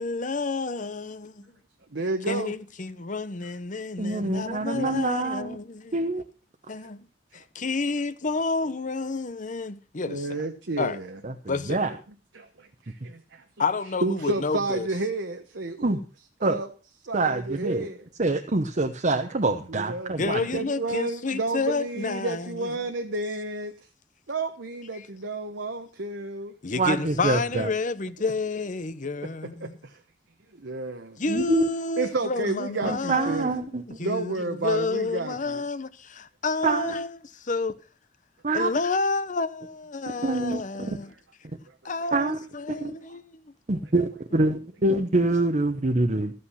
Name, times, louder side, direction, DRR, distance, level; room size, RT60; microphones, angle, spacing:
voice 1, 0.0-1.4 2.3-6.0 6.7-7.1 7.3-10.3 10.8-11.0 11.5-11.8 13.6-14.9 20.2-22.7 24.9-25.1 26.6-29.8 31.2-33.7 34.0-37.8 38.5-41.1 41.8-43.5, left 3 dB, 45° left, 0.9 m, -30 dB
voice 2, 1.9-2.5 4.7-5.0 10.1-11.2 12.3-13.4 14.0-16.0 16.4-16.7 17.1-18.0 19.7-23.7 24.3-26.5 29.2-29.3 29.6-30.0 30.5-31.2 32.0-33.5 34.0-35.6, right 2 dB, 80° right, 1.1 m, -31 dB
voice 3, 4.0-5.6 5.9-6.2 11.2-11.3 11.7-11.9 15.8-16.0 16.4-16.6 17.1-17.9 18.2-20.4 26.8-27.7 31.3-31.7 32.8-34.0 36.6-36.9 38.4-38.7 40.2-41.0 42.1-42.4 42.7-43.0 43.7-46.3, right 2 dB, 45° right, 0.9 m, -25 dB
13.5 x 8.7 x 5.6 m
head